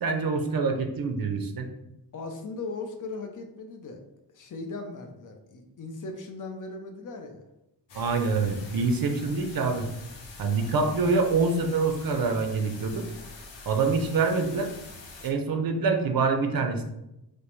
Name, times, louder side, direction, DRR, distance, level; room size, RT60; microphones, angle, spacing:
voice 1, 0.0-1.7 7.9-9.9 10.4-13.0 13.7-14.7 15.2-16.8, right 4 dB, 55° right, 5 dB, 0.6 m, -25 dB
voice 2, 2.1-4.0 4.3-7.4 10.5-10.7, left 3 dB, 45° left, 4 dB, 0.6 m, -38 dB
sound 1, 7.9-15.3, left 3 dB, 90° left, 0.9 m, -45 dB
4.9 x 2.1 x 3.1 m, 0.89 s
wide cardioid pair, 130°, 43 cm